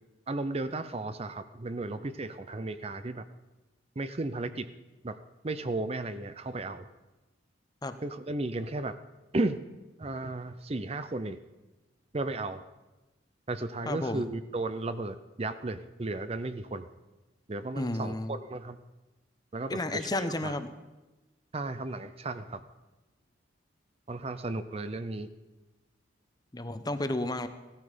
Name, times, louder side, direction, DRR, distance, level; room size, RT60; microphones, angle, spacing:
voice 1, 0.3-3.2 4.0-4.7 5.0-5.2 5.4-6.9 8.0-9.0 9.3-9.6 10.0-11.4 12.1-12.6 13.5-16.9 17.5-18.8 19.5-20.6 21.5-22.6 24.1-25.3, right 2 dB, 30° right, 11 dB, 0.6 m, -34 dB
voice 2, 13.9-14.3 17.8-18.4 19.7-20.7 26.5-27.5, left 1 dB, 20° left, 10 dB, 0.8 m, -32 dB
17.0 x 13.5 x 5.1 m, 1.1 s
head